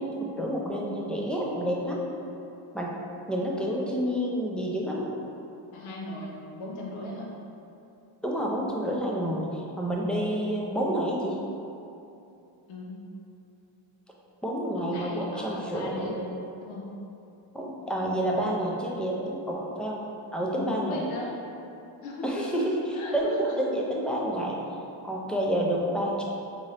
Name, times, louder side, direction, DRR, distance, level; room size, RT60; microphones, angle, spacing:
voice 1, 0.0-2.0 2.7-3.0 3.3-5.1 8.2-11.4 14.4-16.1 17.5-20.0 20.3-21.0 22.2-22.8 23.1-24.6 25.0-26.2, equal, ahead, -3 dB, 0.4 m, -29 dB
voice 2, 5.7-7.3 12.7-13.1 14.7-17.0 20.6-21.4 22.0-22.7 22.9-23.6, left 1 dB, 80° left, -2 dB, 0.8 m, -37 dB
4.1 x 3.7 x 3.2 m, 2.8 s
cardioid pair, 120°, 48 cm